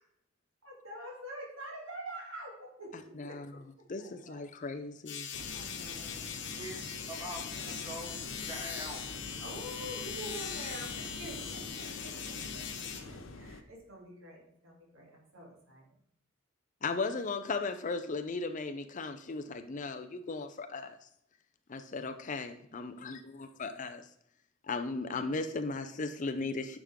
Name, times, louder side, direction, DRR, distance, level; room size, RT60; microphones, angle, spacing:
voice 1, 0.6-2.9 3.2-3.6 4.0-4.4 5.5-6.7 7.6-7.9 9.4-12.7 13.1-15.8, right 1 dB, 75° right, -2 dB, 2.9 m, -46 dB
voice 2, 2.9-3.5 3.9-5.3 16.8-21.0 21.7-24.1 24.7-26.8, left 3 dB, 40° left, 8 dB, 0.5 m, -37 dB
sound 1, 5.1-13.0, left 8 dB, 60° left, 1.3 m, -41 dB
sound 2, 5.3-13.6, left 2 dB, 75° left, 0.8 m, -45 dB
voice 3, 6.6-8.2 8.5-9.1, right 1 dB, 15° right, -1 dB, 2.0 m, -43 dB
10.0 x 6.2 x 3.6 m, 0.74 s
head